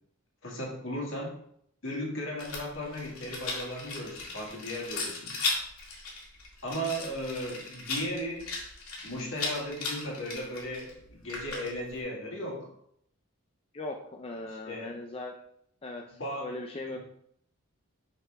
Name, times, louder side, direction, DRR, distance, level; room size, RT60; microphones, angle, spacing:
voice 1, 0.4-1.3 1.8-5.4 6.6-8.5 9.0-12.7 14.5-15.0 16.1-16.5 16.9-17.0, equal, 65° left, -2 dB, 1.9 m, -36 dB
Rattle, 2.4-12.0, left 3 dB, 85° left, 2.1 m, -37 dB
voice 2, 13.7-15.4 15.8-17.0, left 2 dB, 25° left, 2 dB, 0.4 m, -39 dB
5.7 x 5.6 x 3.4 m, 0.71 s
head